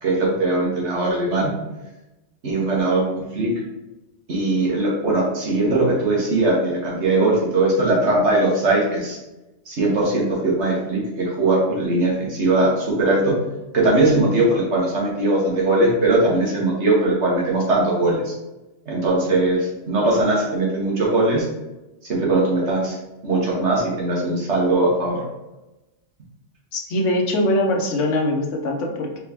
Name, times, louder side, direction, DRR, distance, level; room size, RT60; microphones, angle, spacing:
voice 1, 0.0-1.5 2.4-3.5 4.3-9.2 9.7-13.3 13.7-18.3 18.9-21.5 22.1-22.9 23.2-25.2, right 2 dB, 65° right, -3 dB, 1.6 m, -20 dB
voice 2, 26.7-29.2, left 1 dB, 80° left, 1 dB, 1.1 m, -22 dB
4.6 x 3.5 x 2.9 m, 1.0 s
omnidirectional pair, 1.2 m